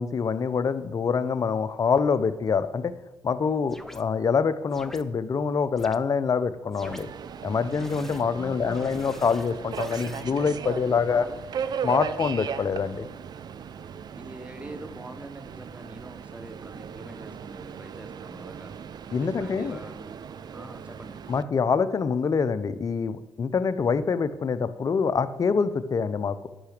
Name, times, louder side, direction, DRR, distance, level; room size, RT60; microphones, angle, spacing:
voice 1, 0.0-2.9 3.2-7.1 7.4-11.3 11.8-13.1 19.1-19.8 21.3-26.5, left 5 dB, 45° left, 14 dB, 0.7 m, -25 dB
sound 1, 3.7-4.0 4.7-5.0 5.8-6.0 6.7-7.0 7.7-8.2 8.7-10.2, left 1 dB, 5° left, 0.7 m, -44 dB
Subway metro underground, 6.8-21.4, right 7 dB, 60° right, 0.5 m, -37 dB
voice 2, 8.3-9.0 11.0-11.4 14.1-18.7 19.2-20.2 20.5-21.2, right 1 dB, 15° right, 9 dB, 1.3 m, -44 dB
8.8 x 5.8 x 6.6 m, 1.1 s
supercardioid pair, 65°, 8 cm